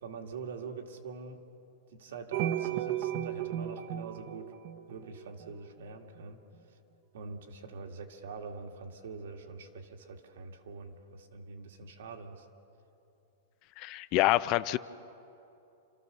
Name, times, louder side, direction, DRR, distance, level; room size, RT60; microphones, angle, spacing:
voice 1, 0.0-1.4 1.9-4.5 4.9-6.4 7.1-12.5, right 4 dB, 75° right, 3 dB, 2.1 m, -44 dB
sound 1, 2.3-5.5, right 11 dB, 35° right, 0.7 m, -34 dB
voice 2, 13.8-14.8, left 16 dB, 30° left, 17 dB, 0.4 m, -27 dB
29.0 x 14.0 x 6.8 m, 2.8 s
supercardioid pair, 170°, 0 cm